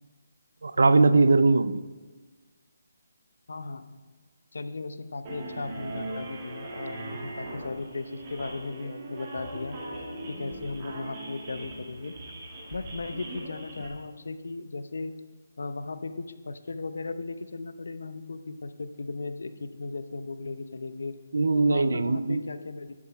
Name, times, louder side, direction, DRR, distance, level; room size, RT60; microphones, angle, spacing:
voice 1, 0.6-1.8 21.3-22.4, right 3 dB, 75° right, 14 dB, 0.5 m, -21 dB
voice 2, 3.5-3.9 4.5-9.8 10.3-12.1 12.7-15.1 15.6-21.2 21.5-22.9, left 3 dB, 75° left, 11 dB, 0.8 m, -36 dB
sound 1, 5.2-13.9, right 2 dB, 25° right, 2.1 m, -40 dB
11.5 x 7.5 x 4.7 m, 1.3 s
hypercardioid pair, 165°, 0 cm